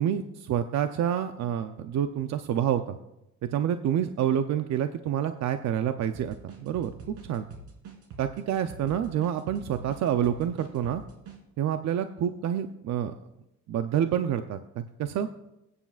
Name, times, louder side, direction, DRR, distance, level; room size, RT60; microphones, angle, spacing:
voice 1, 0.0-3.0 3.5-6.9 7.2-7.4 8.2-11.0 11.6-13.2 13.7-15.3, right 10 dB, 60° right, 8 dB, 0.7 m, -28 dB
sound 1, 6.1-11.4, right 4 dB, 80° right, 3.3 m, -45 dB
21.0 x 9.7 x 2.5 m, 0.90 s
cardioid pair, 105°, 30 cm